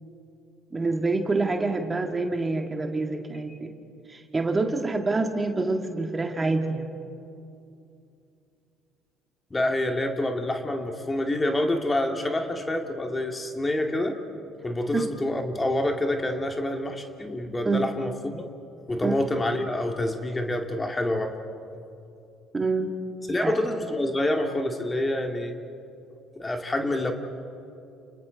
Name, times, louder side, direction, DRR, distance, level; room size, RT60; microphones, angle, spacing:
voice 1, 0.7-3.7 4.1-6.9 14.9-15.0 17.7-17.9 19.0-19.1 22.5-22.9 23.4-23.5, right 3 dB, 25° right, 4 dB, 2.0 m, -26 dB
voice 2, 9.5-14.2 14.6-18.5 18.9-21.4 23.3-25.6 26.4-27.1, left 1 dB, 20° left, 4 dB, 2.5 m, -27 dB
30.0 x 29.0 x 4.1 m, 2.7 s
hypercardioid pair, 55°, 0 cm